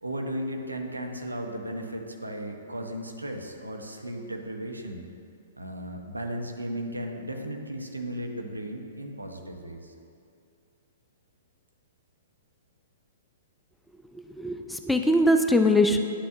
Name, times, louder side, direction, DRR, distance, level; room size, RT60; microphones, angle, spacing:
voice 1, 0.0-5.0 5.6-9.9, right 1 dB, 80° right, 3 dB, 0.7 m, -35 dB
voice 2, 14.1-16.0, left 1 dB, 5° left, 5 dB, 0.3 m, -22 dB
9.8 x 5.7 x 2.5 m, 2.4 s
figure-of-eight pair, 110°, 0 cm